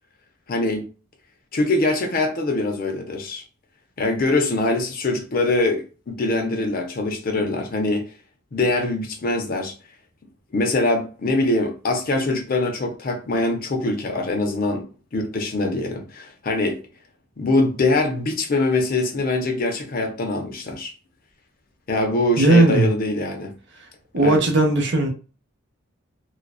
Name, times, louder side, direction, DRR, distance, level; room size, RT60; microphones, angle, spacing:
voice 1, 0.5-0.9 1.5-3.4 4.0-8.0 8.5-9.7 10.5-14.9 15.1-16.8 17.4-20.9 21.9-23.5 24.2-24.4, left 2 dB, 45° left, 0.5 m, -23 dB
voice 2, 22.4-22.9 24.1-25.1, right 2 dB, 55° right, 0.6 m, -16 dB
2.5 x 2.2 x 2.2 m
head